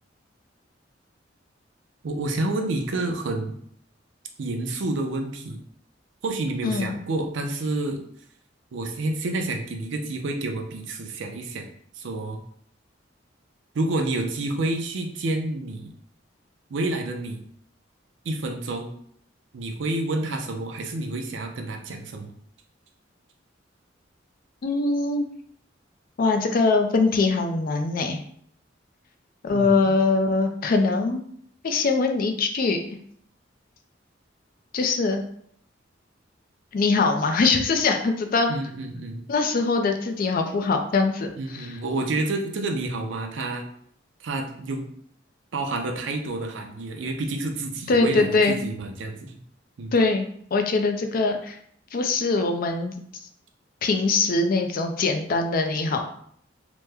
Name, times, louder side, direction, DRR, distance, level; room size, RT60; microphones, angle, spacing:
voice 1, 2.0-3.6 4.4-5.6 6.2-8.0 8.7-11.7 12.0-12.4 13.7-15.9 16.7-17.4 18.2-18.9 19.5-22.3 29.5-30.0 38.5-39.2 41.4-43.7 44.2-44.9 45.5-49.4 49.8-49.9, right 2 dB, 75° right, 4 dB, 0.5 m, -29 dB
voice 2, 6.6-7.0 24.6-25.3 26.2-28.2 29.4-31.2 31.6-32.8 34.7-35.2 36.7-38.5 39.3-41.8 47.9-48.5 49.9-51.6 51.9-52.9 53.8-56.0, left 3 dB, 50° left, 5 dB, 0.4 m, -22 dB
2.9 x 2.0 x 3.4 m, 0.64 s
head